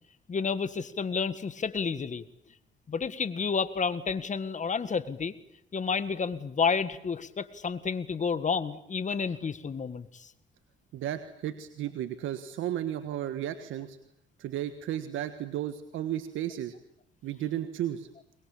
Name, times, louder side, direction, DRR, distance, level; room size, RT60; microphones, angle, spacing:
voice 1, 0.3-2.2 2.9-5.3 5.7-10.3, left 5 dB, 40° left, 13 dB, 1.8 m, -30 dB
voice 2, 10.9-14.0 14.4-16.7 17.2-18.1, right 11 dB, 85° right, 9 dB, 1.6 m, -34 dB
24.0 x 21.5 x 8.8 m, 0.75 s
cardioid pair, 90°, 20 cm